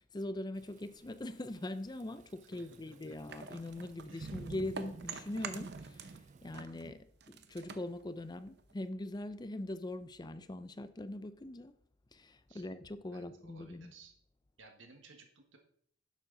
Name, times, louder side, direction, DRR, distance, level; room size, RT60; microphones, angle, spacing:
voice 1, 0.0-11.8 12.1-13.9, left 1 dB, 20° left, 0.5 m, -42 dB
Thunderstorm / Rain, 0.6-6.5, right 4 dB, 40° right, 0.3 m, -51 dB
voice 2, 2.5-3.2 4.1-4.4 12.5-12.6 13.1-14.1 14.6-15.6, right 3 dB, 80° right, 1.6 m, -58 dB
sound 1, 3.3-6.2 6.5-8.9, right 5 dB, 60° right, 0.8 m, -47 dB
11.0 x 7.5 x 3.9 m
head